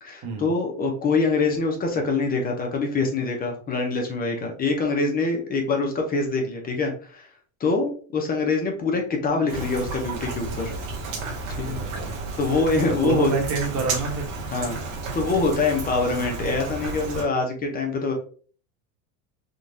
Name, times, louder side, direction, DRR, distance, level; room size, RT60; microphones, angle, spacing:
voice 1, 0.0-7.3 7.6-10.7 11.6-11.8 12.4-13.3 14.5-18.1, left 3 dB, 25° left, 2 dB, 0.6 m, -24 dB
Rain, 9.5-17.2, right 3 dB, 90° right, 1.2 m, -32 dB
voice 2, 11.7-12.1 12.9-14.3, right 4 dB, 40° right, 1 dB, 1.2 m, -27 dB
3.7 x 2.3 x 2.6 m, 0.42 s
supercardioid pair, 130°, 38 cm